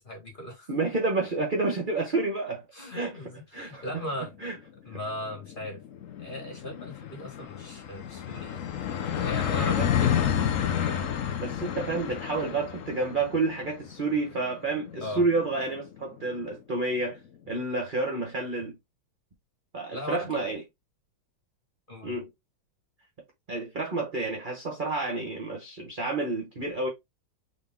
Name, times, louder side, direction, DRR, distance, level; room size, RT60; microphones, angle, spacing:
voice 1, 0.0-0.7 2.7-4.3 4.8-5.8 6.2-8.6 9.2-10.6 15.0-15.2 19.9-20.3 21.9-22.2, left 1 dB, 25° left, 1.9 m, -38 dB
voice 2, 0.7-2.6 2.9-3.1 3.5-3.8 4.4-4.5 9.8-9.9 11.4-17.2 17.5-18.7 19.7-20.6 22.0-22.3 23.5-26.9, right 3 dB, 40° right, 0.7 m, -29 dB
sound 1, 4.2-4.3 4.6-4.7 4.9-16.4, left 9 dB, 65° left, 0.8 m, -31 dB
3.9 x 3.1 x 3.5 m
omnidirectional pair, 2.2 m